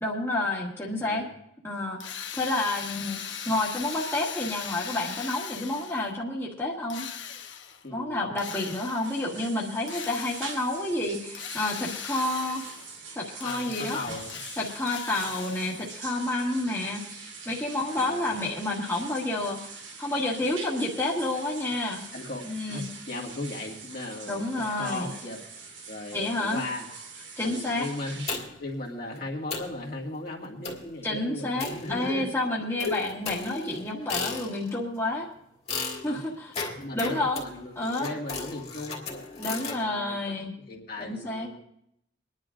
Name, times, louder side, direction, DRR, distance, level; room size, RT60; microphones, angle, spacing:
voice 1, 0.0-1.3 1.6-7.1 7.9-12.6 13.1-14.0 14.6-19.6 20.0-22.0 22.4-22.9 24.3-25.1 26.1-26.6 27.4-27.9 31.0-35.3 36.0-36.5 36.9-37.4 37.8-38.1 39.4-40.5 41.0-41.5, left 2 dB, 15° left, -4 dB, 1.5 m, -29 dB
voice 2, 1.0-1.3 7.8-8.4 13.4-14.4 16.4-16.8 17.9-18.5 22.1-25.4 25.9-26.9 27.4-32.3 32.8-33.0 36.1-36.3 36.8-40.4 40.7-41.6, left 2 dB, 55° left, -2 dB, 2.0 m, -37 dB
Drill, 2.0-6.1 6.9-7.9 8.4-9.2 9.9-10.8 11.3-13.0 13.4-16.0, left 8 dB, 85° left, 1.0 m, -39 dB
sound 1, 9.0-28.4, right 4 dB, 80° right, 2.2 m, -44 dB
sound 2, 28.3-28.7 29.2-29.3 29.5-29.8 30.6-31.0 31.6-32.3 32.8-34.8 35.7-39.8, left 4 dB, 35° left, 1.9 m, -36 dB
23.5 x 10.5 x 2.5 m, 0.74 s
head